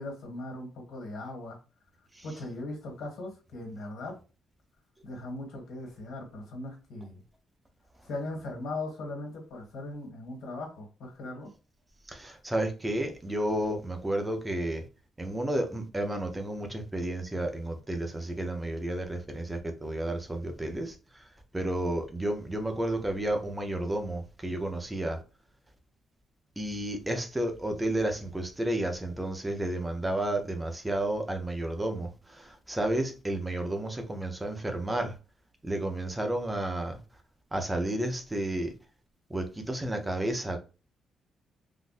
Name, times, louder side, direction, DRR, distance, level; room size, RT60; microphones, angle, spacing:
voice 1, 0.0-1.6 2.2-4.1 5.0-7.2 8.0-11.5, left 2 dB, 75° left, 1.7 m, -39 dB
voice 2, 12.1-14.9 15.2-20.9 21.5-25.2 26.6-35.1 35.6-37.0 37.5-38.7 39.3-40.6, right 1 dB, 10° right, 0.6 m, -31 dB
3.7 x 2.5 x 2.5 m
cardioid pair, 145°, 0 cm